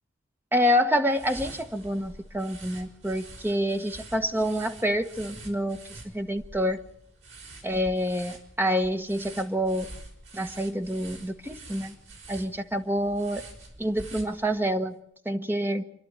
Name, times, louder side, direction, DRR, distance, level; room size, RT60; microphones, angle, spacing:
voice 1, 0.5-5.8 6.1-6.8 7.6-9.9 10.3-11.9 12.3-13.4 13.8-14.9 15.2-15.8, equal, 10° right, 6 dB, 1.1 m, -27 dB
sound 1, 1.1-14.8, right 2 dB, 75° right, 5.6 m, -46 dB
29.0 x 11.5 x 8.6 m, 0.70 s
head